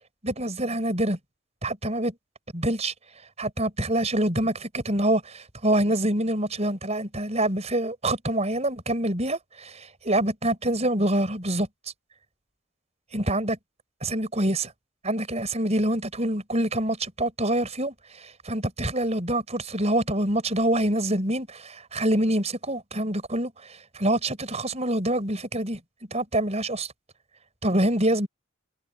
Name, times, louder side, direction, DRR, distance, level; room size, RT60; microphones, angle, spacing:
voice 1, 0.2-1.2 1.6-2.1 2.5-2.9 3.4-9.8 10.1-11.7 13.1-13.6 14.0-14.7 15.0-25.8 26.1-26.9 27.6-28.3, right 1 dB, 35° right, 5.8 m, -26 dB
head